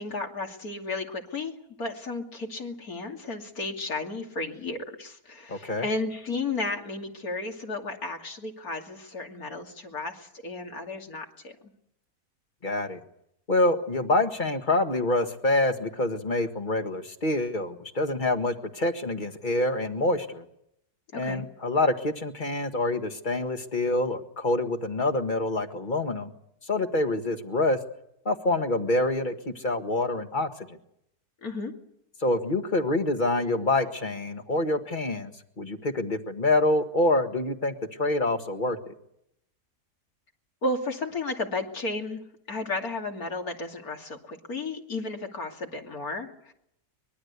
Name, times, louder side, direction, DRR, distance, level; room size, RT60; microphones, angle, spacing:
voice 1, 0.0-11.6 21.1-21.4 31.4-31.7 40.6-42.2 42.5-46.5, left 2 dB, 65° left, 3 dB, 3.2 m, -33 dB
voice 2, 5.5-5.9 12.6-13.0 13.5-20.4 21.1-26.3 26.6-27.8 28.3-30.5 32.2-37.7 38.0-38.8, left 2 dB, 30° left, 8 dB, 1.8 m, -26 dB
24.0 x 22.0 x 8.2 m, 0.77 s
omnidirectional pair, 1.7 m